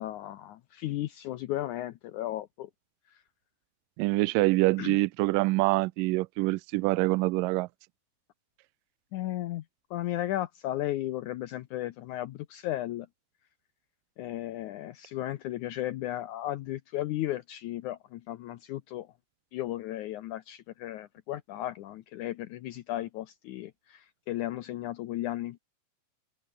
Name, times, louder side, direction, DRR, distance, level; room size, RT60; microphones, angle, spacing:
voice 1, 0.0-2.7 4.8-5.0 9.1-9.6 9.9-13.1 14.2-19.1 19.5-25.6, left 14 dB, 70° left, 2.1 m, -35 dB
voice 2, 4.0-7.7, right 22 dB, 85° right, 2.2 m, -25 dB
open air
omnidirectional pair, 3.9 m